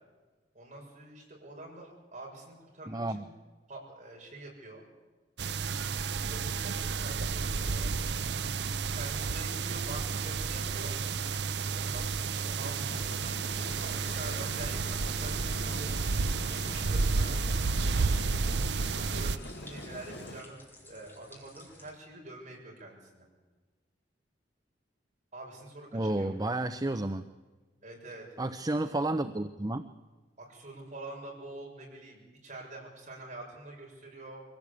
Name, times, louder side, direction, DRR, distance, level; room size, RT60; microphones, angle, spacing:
voice 1, 0.5-3.3 3.7-4.8 6.2-7.9 8.9-11.0 11.7-13.8 14.0-15.9 16.6-17.4 17.9-18.4 19.1-23.3 25.3-26.3 27.8-28.2 30.4-34.4, right 2 dB, 40° right, -1 dB, 7.0 m, -46 dB
voice 2, 2.9-3.2 25.9-27.2 28.4-29.9, right 2 dB, 20° right, 10 dB, 0.7 m, -31 dB
sound 1, 5.4-19.4, right 4 dB, 70° right, 0.6 m, -31 dB
sound 2, 12.9-20.4, left 2 dB, 70° left, 2.2 m, -45 dB
sound 3, 13.8-21.9, left 1 dB, 10° left, 4.6 m, -55 dB
24.5 x 17.0 x 8.5 m, 1.3 s
head